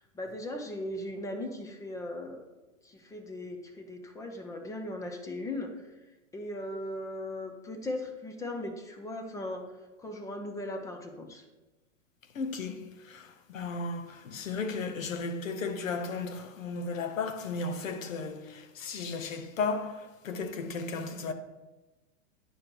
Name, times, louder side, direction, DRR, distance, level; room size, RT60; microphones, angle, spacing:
voice 1, 0.1-2.4 2.8-5.7 6.3-9.7 10.0-11.4, left 1 dB, 10° left, 0.5 m, -38 dB
voice 2, 12.3-21.3, left 4 dB, 80° left, 0.9 m, -35 dB
9.2 x 5.0 x 3.0 m
hypercardioid pair, 130°, 39 cm